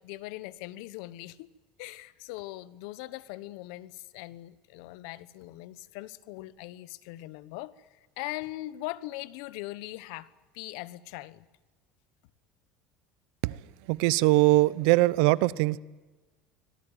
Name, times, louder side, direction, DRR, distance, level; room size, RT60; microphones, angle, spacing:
voice 1, 0.0-1.5 1.8-11.5, left 17 dB, 75° left, 1.1 m, -41 dB
voice 2, 13.9-15.8, right 20 dB, 75° right, 0.8 m, -22 dB
25.0 x 18.0 x 9.2 m
supercardioid pair, 130°, 3 cm